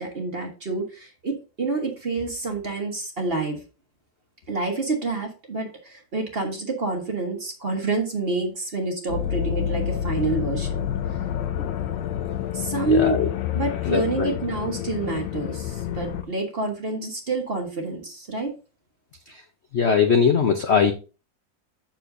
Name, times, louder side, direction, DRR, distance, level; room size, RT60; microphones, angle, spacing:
voice 1, 0.0-3.6 4.5-10.9 12.5-13.2 13.5-18.5, right 3 dB, 35° right, 3 dB, 1.2 m, -28 dB
sound 1, 9.1-16.2, left 10 dB, 80° left, 1.4 m, -28 dB
voice 2, 13.9-14.3 19.7-20.9, left 6 dB, 60° left, 5 dB, 0.7 m, -20 dB
7.6 x 6.4 x 2.6 m, 0.33 s
omnidirectional pair, 2.1 m